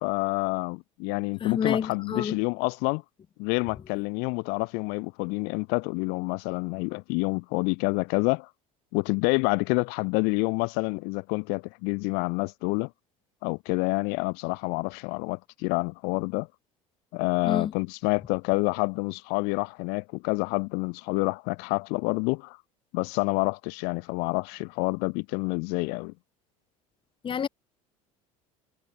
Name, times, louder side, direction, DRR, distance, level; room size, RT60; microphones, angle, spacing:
voice 1, 0.0-3.0 3.4-8.5 8.9-12.9 13.4-16.5 17.1-22.6 22.9-26.1, left 33 dB, 65° left, 0.7 m, -28 dB
voice 2, 1.4-2.4 17.4-17.7 27.2-27.5, left 7 dB, 30° left, 0.9 m, -28 dB
hypercardioid pair, 75°, 18 cm